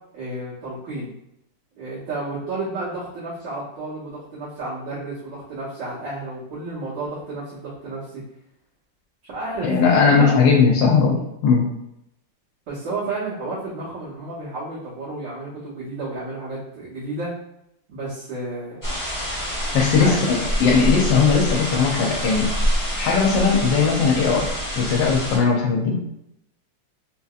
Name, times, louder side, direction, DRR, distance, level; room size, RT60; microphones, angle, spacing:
voice 1, 0.1-1.1 1.8-8.2 9.2-10.4 12.7-17.3 17.9-19.0 19.8-20.2, right 2 dB, 75° right, -10 dB, 1.7 m, -31 dB
voice 2, 9.6-11.7 19.7-22.5 23.0-24.5 24.8-25.9, left 5 dB, 80° left, 0 dB, 1.3 m, -18 dB
sound 1, 18.8-25.4, equal, 30° left, 0.3 m, -26 dB
3.9 x 2.8 x 2.3 m, 0.82 s
omnidirectional pair, 2.0 m